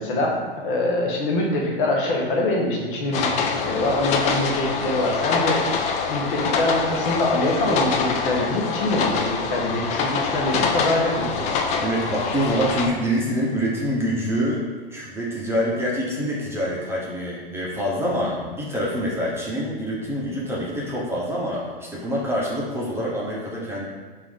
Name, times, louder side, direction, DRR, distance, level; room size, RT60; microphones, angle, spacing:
voice 1, 0.0-5.8 6.1-11.7, left 1 dB, 60° left, -2 dB, 1.1 m, -24 dB
sound 1, 3.1-12.9, left 5 dB, 25° left, 0.4 m, -25 dB
voice 2, 11.8-14.6 14.9-23.8, equal, 10° right, -6 dB, 0.9 m, -26 dB
4.5 x 2.7 x 3.6 m, 1.4 s
hypercardioid pair, 105°, 29 cm